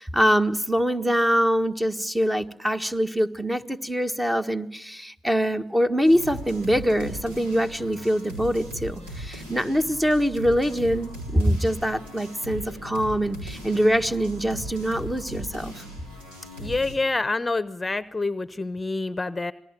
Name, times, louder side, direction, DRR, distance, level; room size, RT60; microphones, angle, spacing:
voice 1, 0.0-15.8, equal, 10° right, 7 dB, 1.6 m, -24 dB
sound 1, 6.0-17.0, equal, 85° right, 5.5 m, -38 dB
voice 2, 16.6-19.5, left 3 dB, 25° left, 15 dB, 0.9 m, -27 dB
27.5 x 19.0 x 9.1 m, 0.79 s
hypercardioid pair, 45°, 0 cm